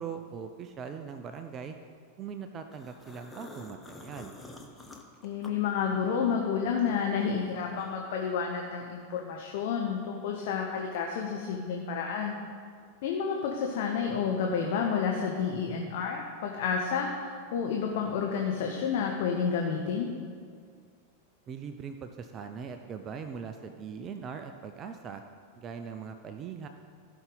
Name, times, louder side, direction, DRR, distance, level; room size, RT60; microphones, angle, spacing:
voice 1, 0.0-1.8 2.2-4.4 21.5-25.2 25.6-26.7, right 6 dB, 30° right, 7 dB, 0.5 m, -40 dB
sound 1, 2.7-6.3 6.6-8.1, left 2 dB, 5° left, 1.1 m, -49 dB
voice 2, 5.2-12.4 13.0-20.1, left 6 dB, 50° left, 1 dB, 0.9 m, -30 dB
15.5 x 5.7 x 4.0 m, 2.1 s
figure-of-eight pair, 90°, 0 cm